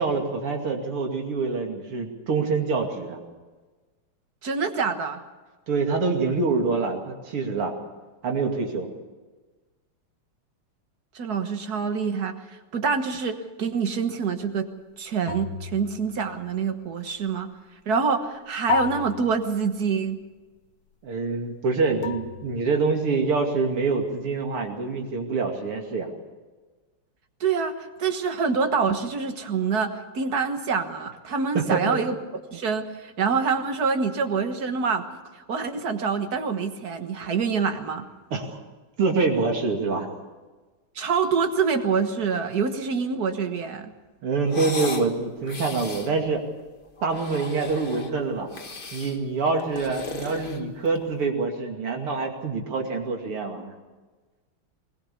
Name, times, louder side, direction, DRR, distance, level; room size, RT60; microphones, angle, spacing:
voice 1, 0.0-3.2 5.7-7.7 8.2-8.9 21.0-26.1 31.5-32.0 38.3-38.6 39.0-40.1 44.2-46.4 47.0-48.5 48.9-53.7, right 4 dB, 90° right, 2 dB, 3.4 m, -26 dB
voice 2, 4.4-5.2 11.1-12.4 12.7-14.7 15.0-17.5 17.8-20.2 27.4-32.1 32.5-35.1 35.5-38.1 40.9-43.9, right 5 dB, 50° right, 7 dB, 1.8 m, -26 dB
sound 1, 15.3-16.9 18.7-20.1 22.0-23.3, left 9 dB, 65° left, 1.7 m, -34 dB
sound 2, 44.5-45.1 45.4-46.1 47.0-48.1 48.5-49.2 49.6-51.1, left 3 dB, 30° left, 1.4 m, -36 dB
20.5 x 20.0 x 7.0 m, 1.3 s
omnidirectional pair, 2.4 m